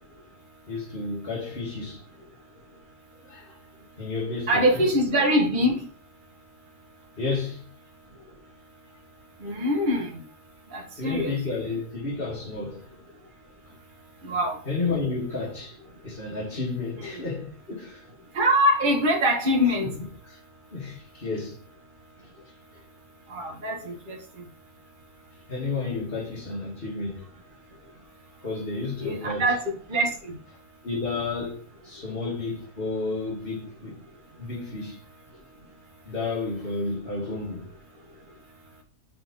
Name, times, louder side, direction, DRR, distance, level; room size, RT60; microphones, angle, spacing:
voice 1, 0.7-2.0 3.1-4.9 7.2-7.7 11.0-12.9 13.7-13.8 14.7-15.8 16.0-18.1 19.8-20.0 20.3-20.4 20.7-21.6 22.7-22.8 25.5-27.3 28.4-29.5 30.8-34.0 34.4-35.0 36.0-37.7, left 3 dB, 40° left, 2.3 m, -32 dB
voice 2, 4.5-5.8 9.4-10.2 10.7-11.3 14.2-14.6 17.0-17.1 18.3-19.9 23.3-24.2 29.0-29.6 29.9-30.1, equal, 35° right, 1.6 m, -23 dB
5.8 x 4.7 x 5.3 m
omnidirectional pair, 1.5 m